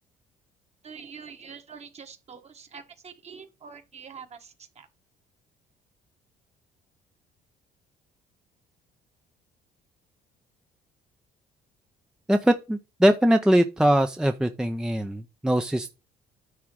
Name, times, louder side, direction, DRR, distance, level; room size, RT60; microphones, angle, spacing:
voice 1, 0.8-4.9, right 6 dB, 40° right, 1.5 m, -45 dB
voice 2, 12.3-15.9, right 1 dB, 5° right, 0.5 m, -22 dB
9.7 x 3.5 x 6.2 m
cardioid pair, 110°, 17 cm